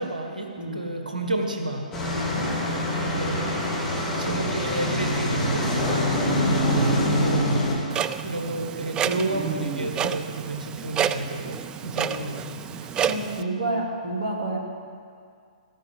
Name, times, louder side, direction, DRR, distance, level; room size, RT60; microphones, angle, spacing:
voice 1, 0.0-1.9 3.1-3.5 4.2-5.7 7.1-7.5 8.2-12.4, right 2 dB, 80° right, 3 dB, 1.6 m, -30 dB
voice 2, 0.6-0.9 2.1-2.5 6.1-6.6 11.9-14.6, right 2 dB, 55° right, -1 dB, 2.9 m, -31 dB
sound 1, 1.9-7.8, equal, 20° left, 3.6 m, -24 dB
Clock, 7.9-13.4, right 8 dB, 15° right, 0.3 m, -29 dB
17.0 x 14.0 x 3.8 m, 2.2 s
figure-of-eight pair, 120°, 4 cm